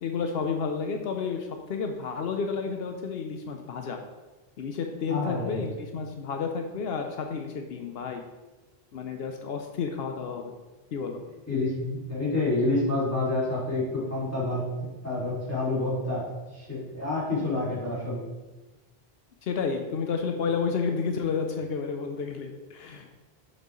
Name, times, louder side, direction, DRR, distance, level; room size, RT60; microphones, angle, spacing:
voice 1, 0.0-4.0 4.6-8.2 8.9-10.5 10.9-11.2 19.4-23.1, left 5 dB, 75° left, 4 dB, 0.9 m, -31 dB
voice 2, 5.1-5.6 11.5-14.6 15.0-16.3 16.5-18.2, left 2 dB, 15° left, -8 dB, 2.4 m, -28 dB
6.7 x 6.1 x 3.1 m, 1.2 s
omnidirectional pair, 1.0 m